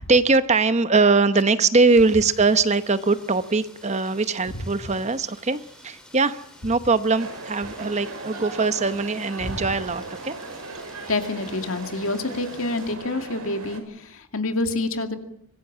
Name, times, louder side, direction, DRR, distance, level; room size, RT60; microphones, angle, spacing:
voice 1, 0.0-10.3, right 3 dB, 30° right, 0.9 m, -21 dB
Rain, 1.9-12.9, left 1 dB, 5° left, 5.2 m, -50 dB
sound 1, 7.1-13.8, right 3 dB, 85° right, 5.3 m, -38 dB
voice 2, 11.1-15.2, left 2 dB, 65° left, 2.4 m, -27 dB
25.0 x 16.5 x 7.4 m
head